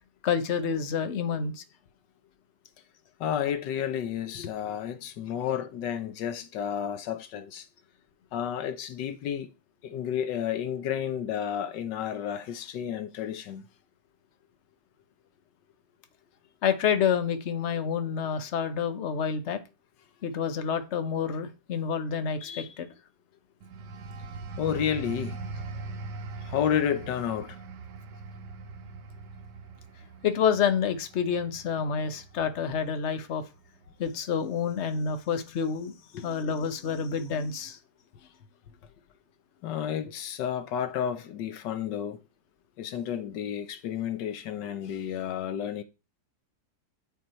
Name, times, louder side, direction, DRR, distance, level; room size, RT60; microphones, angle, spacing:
voice 1, 0.2-1.6 16.6-19.6 20.2-22.9 30.2-33.4 34.0-37.8, left 7 dB, 45° left, 1.2 m, -28 dB
voice 2, 3.2-7.7 8.3-9.5 9.8-13.6 24.6-25.4 26.4-27.6 36.1-36.2 39.6-42.2 42.8-45.8, left 9 dB, 85° left, 1.5 m, -31 dB
sound 1, 23.6-34.0 34.4-34.7, right 4 dB, 80° right, 1.5 m, -42 dB
9.2 x 5.8 x 4.3 m
omnidirectional pair, 1.8 m